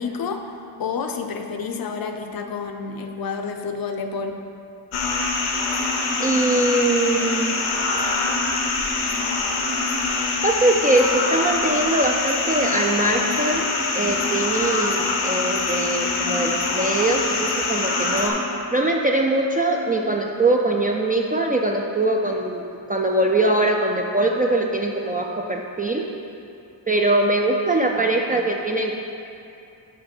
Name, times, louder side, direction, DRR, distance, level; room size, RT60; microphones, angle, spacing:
voice 1, 0.0-4.4, left 5 dB, 50° left, 5 dB, 0.6 m, -29 dB
sound 1, 4.9-18.3, left 3 dB, 80° left, 1.1 m, -24 dB
voice 2, 6.2-7.6 10.4-13.7 13.9-18.4 18.7-22.6 22.9-26.0 26.9-28.9, right 2 dB, 20° right, 0 dB, 0.3 m, -22 dB
6.4 x 5.6 x 4.4 m, 2.6 s
cardioid pair, 95°, 48 cm